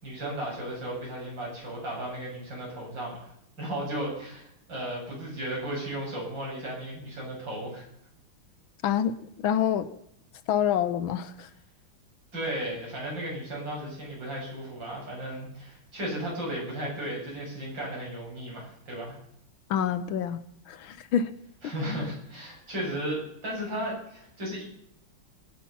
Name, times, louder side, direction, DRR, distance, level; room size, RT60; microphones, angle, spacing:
voice 1, 0.0-3.3 3.6-7.8 12.3-19.2 21.6-24.6, right 1 dB, 55° right, -3 dB, 8.3 m, -35 dB
voice 2, 8.8-9.1 9.4-9.9 10.5-11.5 19.7-20.4 20.7-21.3, left 9 dB, 75° left, 13 dB, 1.6 m, -26 dB
21.5 x 9.0 x 5.8 m, 0.74 s
omnidirectional pair, 2.3 m